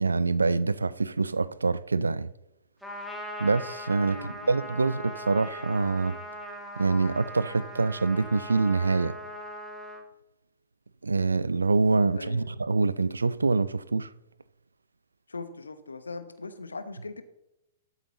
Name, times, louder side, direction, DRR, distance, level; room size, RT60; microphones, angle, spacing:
voice 1, 0.0-2.3 3.4-6.2 6.8-9.2 11.0-14.1, right 3 dB, 80° right, 0.4 m, -25 dB
Trumpet, 2.8-10.0, equal, ahead, 1.7 m, -40 dB
voice 2, 4.1-4.6 12.1-12.5 15.3-17.2, left 3 dB, 80° left, 1.0 m, -40 dB
13.0 x 8.0 x 3.0 m
figure-of-eight pair, 110°, 0 cm